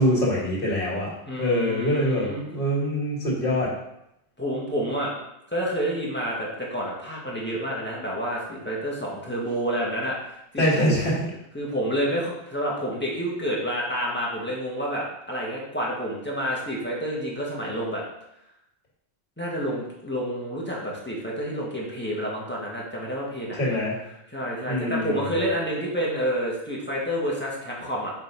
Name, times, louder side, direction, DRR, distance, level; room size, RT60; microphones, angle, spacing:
voice 1, 0.0-3.7 10.6-11.2 23.6-24.0 24.6-25.4, equal, 50° left, -6 dB, 2.9 m, -24 dB
voice 2, 1.3-2.4 4.4-5.1 5.5-10.9 11.5-18.0 19.4-23.8 24.3-28.1, equal, 10° left, -5 dB, 1.7 m, -29 dB
7.1 x 4.1 x 5.3 m, 0.81 s
omnidirectional pair, 1.1 m